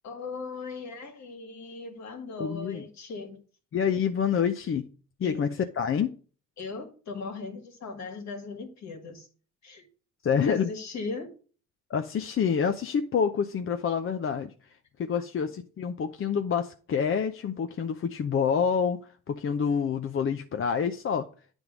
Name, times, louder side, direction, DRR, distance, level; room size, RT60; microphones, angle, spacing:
voice 1, 0.0-3.4 5.2-5.5 6.6-9.3 9.6-9.9 10.5-11.3, left 4 dB, 65° left, 4 dB, 2.0 m, -38 dB
voice 2, 2.4-2.8 3.7-4.9 5.2-6.2 10.2-10.7 11.9-14.5 15.0-19.0 19.3-21.3, left 7 dB, 45° left, 7 dB, 0.6 m, -27 dB
9.4 x 3.6 x 6.0 m, 0.40 s
cardioid pair, 90°, 30 cm